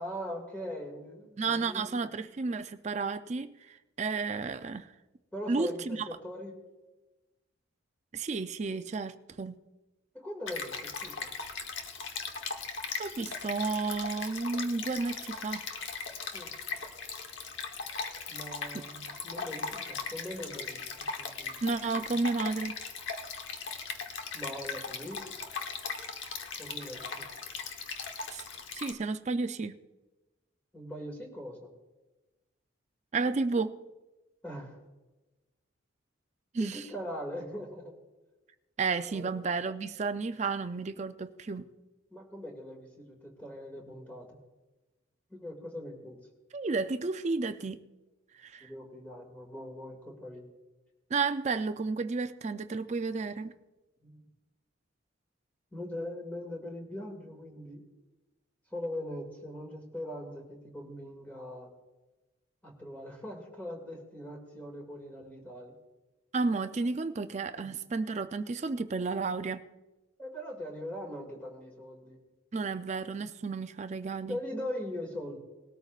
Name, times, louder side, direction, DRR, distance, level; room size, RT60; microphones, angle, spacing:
voice 1, 0.0-2.0 5.3-6.5 10.1-11.4 16.3-16.5 18.3-21.6 24.3-25.2 26.6-27.3 30.7-31.7 34.4-34.8 36.6-38.0 39.1-39.3 42.1-44.4 45.3-46.2 48.6-50.5 54.0-54.2 55.7-57.8 58.7-61.7 62.6-65.7 67.6-67.7 70.2-72.2 74.3-75.4, left 1 dB, 10° left, -1 dB, 2.1 m, -41 dB
voice 2, 1.4-4.9 5.5-6.0 8.1-9.6 13.0-15.6 21.6-22.7 28.3-28.4 28.7-29.8 33.1-33.8 36.5-36.8 38.8-41.6 46.5-47.8 48.4-48.7 51.1-53.6 66.3-69.6 72.5-74.4, right 4 dB, 35° right, 10 dB, 0.4 m, -32 dB
Stream, 10.5-28.9, left 5 dB, 65° left, 1.1 m, -39 dB
19.5 x 13.0 x 2.4 m, 1.1 s
head